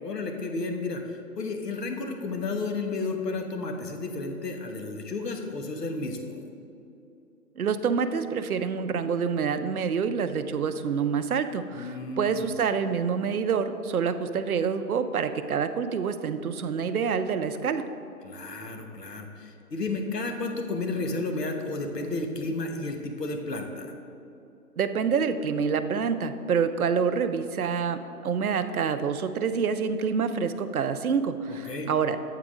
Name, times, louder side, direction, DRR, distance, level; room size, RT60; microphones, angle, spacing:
voice 1, 0.0-6.4 11.7-12.4 18.2-23.9 31.5-31.9, left 3 dB, 90° left, 4 dB, 1.1 m, -32 dB
voice 2, 7.6-17.8 24.8-32.2, right 6 dB, 65° right, 10 dB, 0.5 m, -27 dB
8.1 x 3.8 x 4.8 m, 2.7 s
hypercardioid pair, 175°, 47 cm